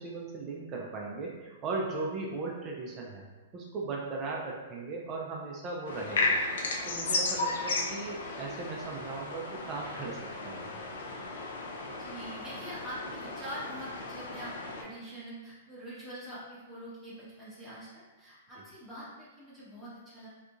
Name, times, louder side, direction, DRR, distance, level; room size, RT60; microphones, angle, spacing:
voice 1, 0.0-3.2 3.5-6.4 6.9-10.9, right 3 dB, 30° right, -2 dB, 0.5 m, -37 dB
sound 1, 5.9-14.8, left 3 dB, 75° left, 0.5 m, -34 dB
voice 2, 12.0-17.9 18.2-20.3, right 1 dB, 5° right, -10 dB, 0.9 m, -44 dB
2.8 x 2.4 x 2.4 m, 1.2 s
hypercardioid pair, 130°, 0 cm